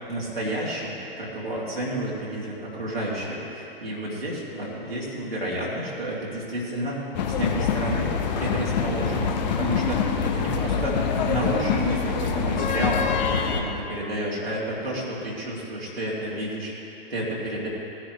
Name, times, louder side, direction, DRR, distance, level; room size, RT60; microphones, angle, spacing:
voice 1, 0.1-7.0 7.4-16.7 17.1-17.7, right 1 dB, 85° right, -7 dB, 2.9 m, -30 dB
sound 1, 7.1-13.6, left 6 dB, 45° left, 1.0 m, -25 dB
17.5 x 10.5 x 3.3 m, 2.9 s
figure-of-eight pair, 105°, 29 cm